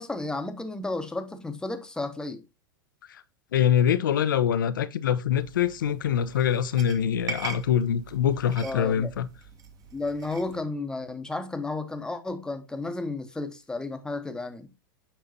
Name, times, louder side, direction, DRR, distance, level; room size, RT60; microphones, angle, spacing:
voice 1, 0.0-2.4 8.6-9.1 9.9-14.7, left 2 dB, 5° left, 0.9 m, -33 dB
voice 2, 3.5-9.3, left 9 dB, 75° left, 0.6 m, -24 dB
sound 1, 5.4-10.6, right 4 dB, 35° right, 1.2 m, -42 dB
7.2 x 5.5 x 2.7 m
hypercardioid pair, 95°, 11 cm